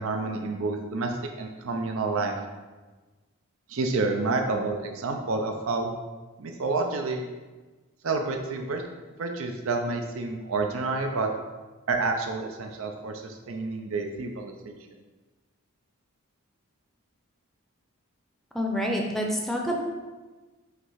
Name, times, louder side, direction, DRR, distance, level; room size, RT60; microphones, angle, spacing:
voice 1, 0.0-2.4 3.7-5.9 6.4-7.2 8.0-8.8 9.2-11.3 11.9-14.7, right 3 dB, 65° right, 3 dB, 0.5 m, -29 dB
voice 2, 18.5-19.8, equal, ahead, 0 dB, 0.6 m, -27 dB
5.8 x 3.2 x 5.5 m, 1.3 s
head